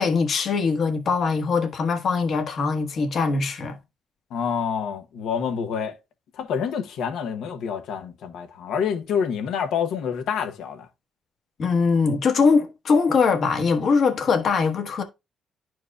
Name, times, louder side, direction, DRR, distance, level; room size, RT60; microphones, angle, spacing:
voice 1, 0.0-3.8 11.6-15.0, left 5 dB, 60° left, 1.2 m, -22 dB
voice 2, 4.3-6.0 6.3-10.9, left 7 dB, 80° left, 0.9 m, -27 dB
11.0 x 4.6 x 2.3 m
cardioid pair, 90°, 0 cm